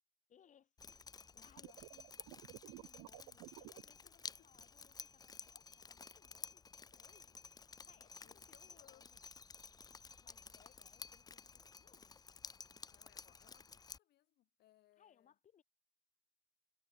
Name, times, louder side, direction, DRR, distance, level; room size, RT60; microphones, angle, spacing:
voice 1, 0.3-9.2 10.2-12.2 15.0-15.6, left 8 dB, 45° left, 4.4 m, -70 dB
Drip, 0.8-14.0, left 5 dB, 25° left, 0.8 m, -54 dB
sound 1, 1.6-3.8, right 21 dB, 90° right, 1.3 m, -53 dB
voice 2, 4.0-4.5 7.7-9.3 12.9-15.3, left 14 dB, 70° left, 5.9 m, -70 dB
cardioid pair, 110°, 17 cm